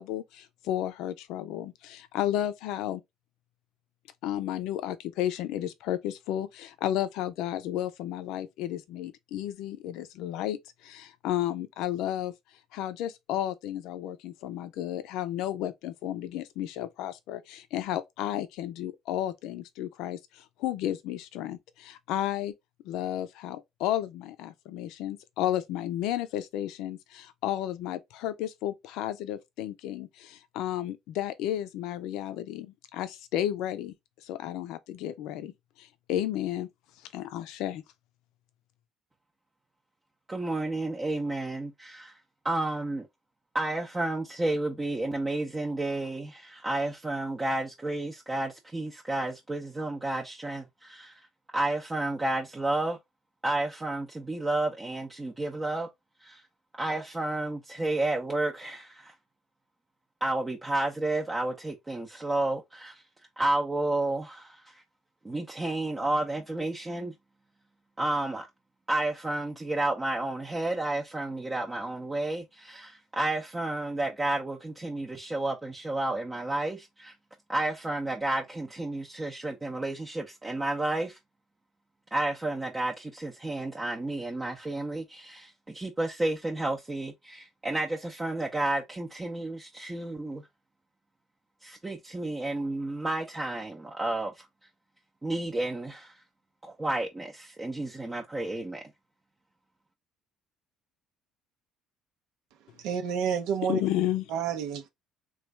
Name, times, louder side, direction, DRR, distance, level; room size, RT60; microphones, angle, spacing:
voice 1, 0.0-3.0 4.2-10.6 10.8-12.3 12.7-22.5 22.8-33.9 34.2-35.5 35.8-36.7 37.1-37.8 103.6-104.3, left 12 dB, 80° left, 0.5 m, -32 dB
voice 2, 40.3-42.2 42.4-43.1 43.5-51.3 51.5-53.0 53.4-55.9 56.2-56.4 56.8-59.1 60.2-63.0 63.4-64.8 65.2-67.1 68.0-68.5 68.9-77.1 77.5-81.2 82.1-90.4 91.6-94.5 95.2-96.2 96.6-98.8, right 2 dB, 20° right, 0.5 m, -31 dB
voice 3, 102.8-103.8 104.3-104.9, right 8 dB, 80° right, 0.6 m, -29 dB
3.1 x 2.4 x 3.2 m
cardioid pair, 100°, 0 cm